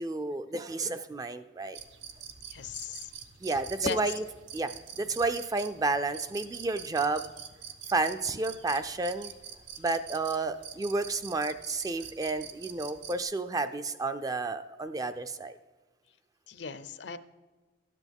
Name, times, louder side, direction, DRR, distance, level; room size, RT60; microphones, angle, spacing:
voice 1, 0.0-1.8 3.4-4.2 4.5-4.7 5.0-7.3 7.9-9.3 9.8-15.6, right 3 dB, 20° right, 10 dB, 0.3 m, -31 dB
sound 1, 1.7-13.2, right 8 dB, 70° right, 0.7 m, -46 dB
voice 2, 2.5-3.1 3.5-4.0 4.9-5.2 16.5-17.2, left 5 dB, 65° left, 12 dB, 0.6 m, -38 dB
13.0 x 8.3 x 3.5 m, 1.3 s
head